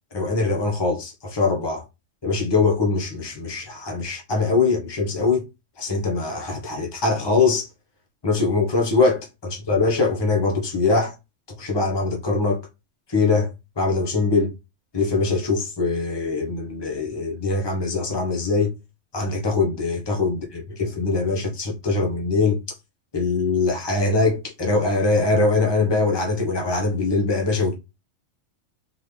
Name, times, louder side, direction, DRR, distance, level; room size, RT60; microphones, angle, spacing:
voice 1, 0.1-1.8 2.2-5.4 5.8-7.7 8.2-11.1 11.6-12.6 13.1-13.5 13.8-14.5 14.9-18.7 19.1-22.6 23.1-27.8, left 3 dB, 20° left, 1.1 m, -22 dB
3.9 x 3.3 x 3.3 m
omnidirectional pair, 1.3 m